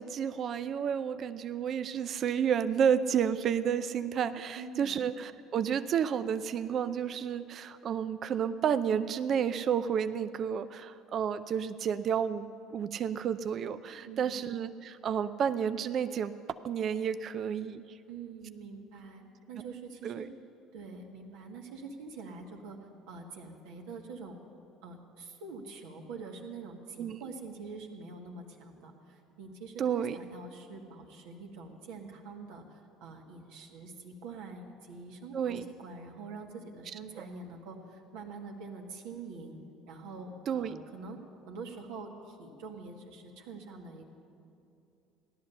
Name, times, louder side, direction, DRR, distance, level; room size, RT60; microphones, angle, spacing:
voice 1, 0.0-12.5 12.7-16.3 16.6-18.0 20.0-20.3 27.0-27.2 29.8-30.2 35.3-35.6 40.5-40.8, right 8 dB, 50° right, 12 dB, 0.5 m, -31 dB
voice 2, 4.6-5.0 14.1-14.5 18.1-19.2 19.5-20.3 20.7-22.8 23.1-24.4 24.8-39.6 39.9-41.2 41.5-44.0, right 4 dB, 75° right, 1 dB, 1.8 m, -45 dB
16.0 x 11.5 x 6.9 m, 2.7 s
hypercardioid pair, 70°, 0 cm